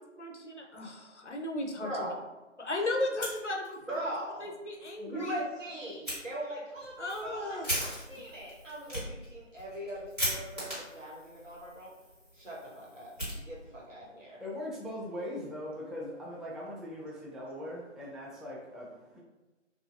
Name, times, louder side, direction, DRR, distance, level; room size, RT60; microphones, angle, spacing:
voice 1, 0.2-2.1 2.6-4.0 4.4-5.4 7.0-7.7, left 2 dB, 65° left, 2 dB, 0.6 m, -35 dB
voice 2, 1.8-2.2 3.9-4.5 5.0-11.9 12.3-13.6 13.9-14.4, right 1 dB, 75° right, -6 dB, 1.3 m, -40 dB
Fire, 3.0-4.0 4.3-4.4 4.8-4.9 6.0-6.2 6.8-13.9, equal, 30° right, 1.3 m, -39 dB
voice 3, 14.0-19.2, left 1 dB, ahead, -6 dB, 0.3 m, -41 dB
3.0 x 2.3 x 2.4 m, 1.1 s
figure-of-eight pair, 170°, 38 cm